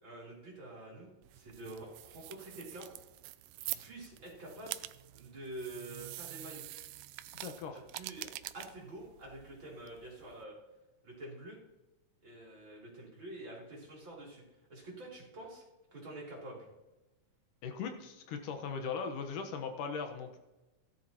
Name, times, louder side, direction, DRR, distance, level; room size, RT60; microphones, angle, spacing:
voice 1, 0.0-2.9 3.6-4.9 5.1-6.6 7.7-10.5 11.0-11.6 12.2-14.4 14.7-15.6 15.9-16.7, right 1 dB, 35° right, -4 dB, 4.3 m, -47 dB
sound 1, 1.2-10.4, right 16 dB, 85° right, 2.1 m, -46 dB
voice 2, 7.4-7.8 17.6-20.4, left 5 dB, 90° left, 5 dB, 2.9 m, -39 dB
16.5 x 11.5 x 3.0 m, 1.1 s
omnidirectional pair, 3.6 m